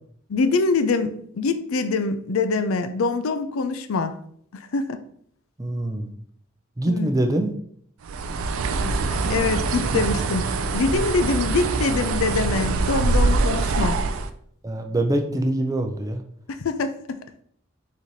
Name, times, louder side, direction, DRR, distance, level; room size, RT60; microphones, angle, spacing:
voice 1, 0.3-4.2 4.7-5.0 6.9-7.1 8.8-14.0 16.6-17.2, left 4 dB, 85° left, 10 dB, 0.5 m, -24 dB
voice 2, 5.6-6.1 6.8-7.6 14.6-16.2, right 1 dB, 15° right, 4 dB, 0.5 m, -24 dB
Bird, 8.1-14.3, right 3 dB, 85° right, 0.4 m, -24 dB
4.1 x 3.1 x 4.0 m, 0.64 s
head